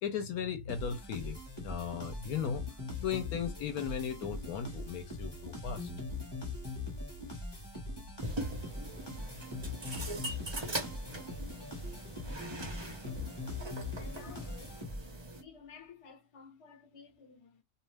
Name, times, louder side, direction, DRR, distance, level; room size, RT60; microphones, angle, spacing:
voice 1, 0.0-2.6 3.0-6.1, left 7 dB, 70° left, 1.0 m, -37 dB
sound 1, 0.7-15.3, left 2 dB, 20° left, 0.9 m, -41 dB
sound 2, 8.2-15.4, right 1 dB, 40° right, 0.4 m, -42 dB
voice 2, 13.0-13.4 14.0-14.8 15.3-17.6, left 6 dB, 35° left, 0.5 m, -53 dB
2.5 x 2.3 x 3.2 m
omnidirectional pair, 1.8 m